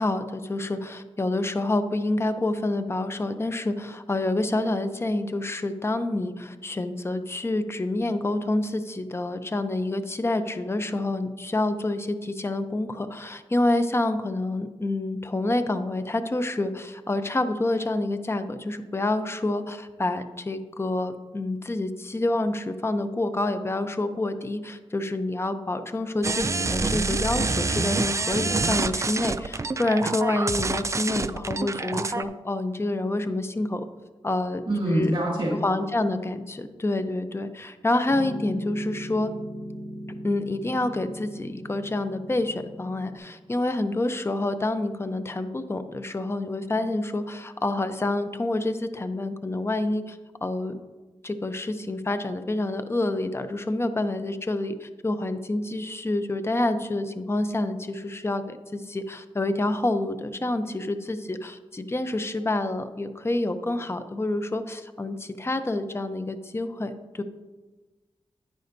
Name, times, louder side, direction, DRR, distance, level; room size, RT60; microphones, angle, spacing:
voice 1, 0.0-33.9 34.2-35.1 35.6-39.3 40.2-50.8 51.2-67.2, left 2 dB, 25° left, 10 dB, 0.6 m, -28 dB
sound 1, 26.2-32.2, right 3 dB, 30° right, 0.4 m, -27 dB
voice 2, 34.7-35.6, right 1 dB, 50° right, -5 dB, 2.4 m, -24 dB
Piano, 38.1-43.2, equal, 75° left, 2.8 m, -38 dB
10.5 x 9.4 x 2.7 m, 1.2 s
wide cardioid pair, 70°, 10 cm